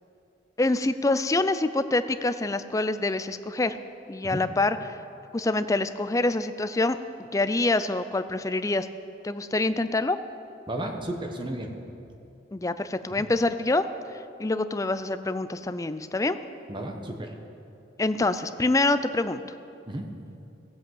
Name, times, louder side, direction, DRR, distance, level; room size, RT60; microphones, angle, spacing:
voice 1, 0.6-3.8 4.1-5.0 5.3-8.9 9.2-10.2 12.5-13.8 14.1-16.4 18.0-19.4, left 2 dB, 20° left, 12 dB, 0.4 m, -26 dB
voice 2, 10.7-11.7 16.7-17.3 19.9-20.1, right 1 dB, 25° right, 3 dB, 1.2 m, -33 dB
16.0 x 8.0 x 7.8 m, 2.7 s
head